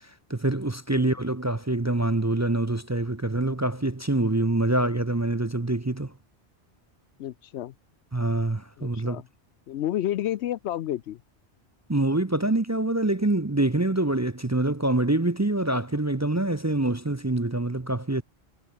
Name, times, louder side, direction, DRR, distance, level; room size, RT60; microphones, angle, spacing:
voice 1, 0.3-6.1 8.1-9.2 11.9-18.2, right 2 dB, 20° right, 0.7 m, -25 dB
voice 2, 7.2-7.7 8.8-9.2 9.7-11.2, left 12 dB, 85° left, 0.9 m, -30 dB
omnidirectional pair, 1.1 m